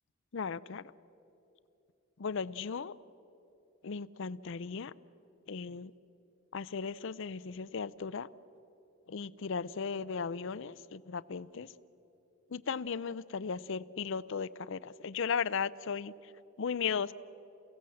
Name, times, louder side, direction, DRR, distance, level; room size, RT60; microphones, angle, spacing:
voice 1, 0.3-0.8 2.2-2.9 3.8-4.9 5.5-5.9 6.5-8.3 9.1-11.7 12.5-16.1 16.6-17.1, left 6 dB, 65° left, 17 dB, 0.5 m, -36 dB
29.5 x 17.0 x 7.7 m, 2.9 s
head